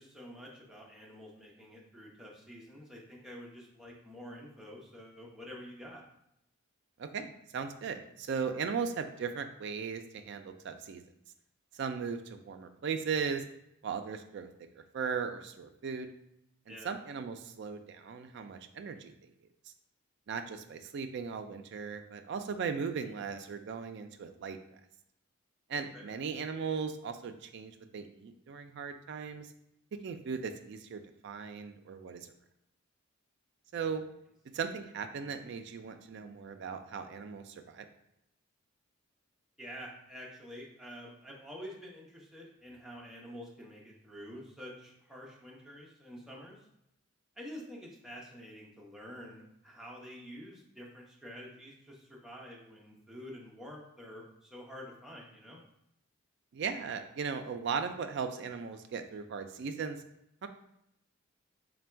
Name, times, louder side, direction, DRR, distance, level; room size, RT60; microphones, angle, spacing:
voice 1, 0.0-6.0 16.7-16.9 25.7-26.1 39.6-46.7 47.4-55.6, equal, 5° right, -4 dB, 0.6 m, -48 dB
voice 2, 7.0-11.0 11.7-13.4 13.8-14.5 14.9-16.1 16.8-19.1 20.3-24.8 25.7-29.5 30.0-32.3 33.7-34.0 34.5-37.9 56.5-60.0 60.4-60.5, right 6 dB, 55° right, 7 dB, 0.3 m, -37 dB
3.4 x 2.2 x 4.3 m, 0.79 s
head